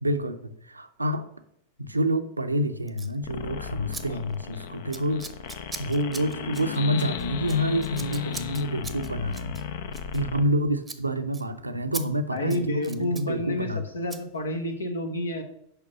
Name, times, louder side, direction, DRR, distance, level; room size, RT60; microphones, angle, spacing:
voice 1, 0.0-1.3 1.8-5.2 5.8-9.5 10.1-13.8, equal, 85° right, 9 dB, 0.6 m, -28 dB
Scissors, 2.9-3.2 3.9-4.0 4.3-4.6 4.9-10.6 10.8-11.0 11.3-11.4 11.9-12.0 12.4-13.3 14.1-14.2, right 4 dB, 10° right, 0.8 m, -40 dB
sound 1, 3.2-10.4, left 8 dB, 55° left, 0.6 m, -35 dB
voice 2, 12.3-13.7 13.9-15.4, left 1 dB, 75° left, 6 dB, 1.2 m, -29 dB
6.7 x 5.2 x 6.0 m, 0.77 s
figure-of-eight pair, 90°, 0 cm